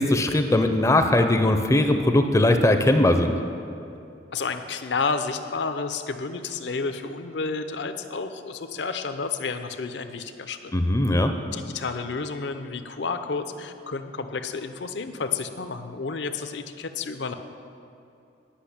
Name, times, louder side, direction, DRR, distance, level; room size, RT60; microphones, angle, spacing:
voice 1, 0.0-3.3 10.7-11.3, left 1 dB, 15° left, 6 dB, 0.5 m, -20 dB
voice 2, 4.3-10.7 11.5-17.3, left 4 dB, 70° left, 8 dB, 0.6 m, -31 dB
10.0 x 5.9 x 8.5 m, 2.7 s
head